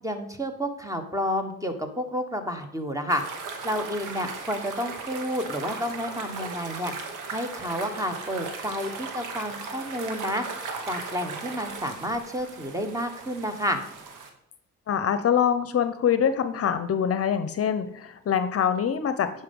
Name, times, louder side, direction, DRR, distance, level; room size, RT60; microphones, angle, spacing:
voice 1, 0.0-3.2 3.6-6.9 7.3-10.4 10.9-13.8, equal, 10° right, 6 dB, 1.3 m, -30 dB
sound 1, 3.1-14.3, right 4 dB, 90° right, 1.4 m, -37 dB
voice 2, 14.9-19.4, left 8 dB, 50° left, 11 dB, 0.7 m, -24 dB
9.5 x 5.4 x 5.4 m, 0.73 s
cardioid pair, 90°, 30 cm